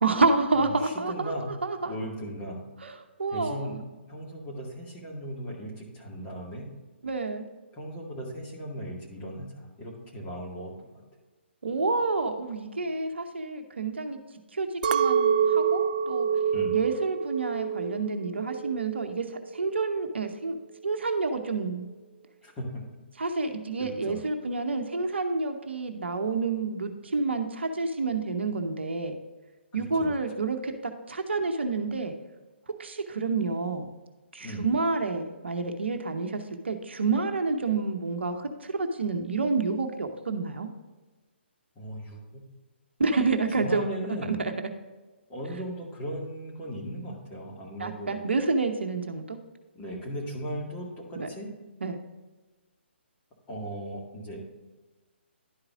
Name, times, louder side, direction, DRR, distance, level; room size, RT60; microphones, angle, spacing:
voice 1, 0.0-1.9 2.8-2.9 3.2-3.7 7.0-7.5 11.6-14.2 14.5-16.3 16.7-20.6 20.8-21.9 23.2-29.2 29.7-30.7 31.1-32.1 32.8-33.9 34.3-40.7 43.0-44.7 47.8-49.4 51.2-51.3 51.8-52.0, right 3 dB, 70° right, 6 dB, 0.9 m, -29 dB
voice 2, 0.6-1.5 1.8-2.6 3.3-6.7 7.7-11.0 16.5-16.8 22.4-23.0 23.8-24.2 29.7-30.1 34.4-34.7 41.8-42.2 43.6-44.5 45.3-48.2 49.7-51.5 53.5-54.4, equal, 20° left, -2 dB, 2.1 m, -37 dB
Chink clink, 14.8-19.2 19.6-20.2, right 7 dB, 45° right, 0.4 m, -27 dB
11.5 x 4.8 x 3.6 m, 1.3 s
figure-of-eight pair, 135°, 6 cm